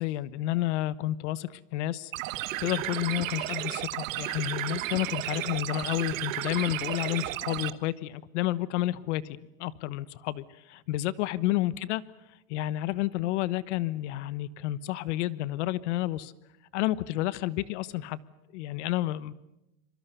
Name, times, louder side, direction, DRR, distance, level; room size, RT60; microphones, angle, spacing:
voice 1, 0.0-2.3 2.6-12.0 12.5-16.3 16.7-18.2 18.5-19.3, left 15 dB, 60° left, 18 dB, 1.2 m, -30 dB
sound 1, 2.1-7.7, right 16 dB, 70° right, 1.4 m, -33 dB
26.0 x 24.0 x 6.8 m, 0.91 s
supercardioid pair, 155°, 41 cm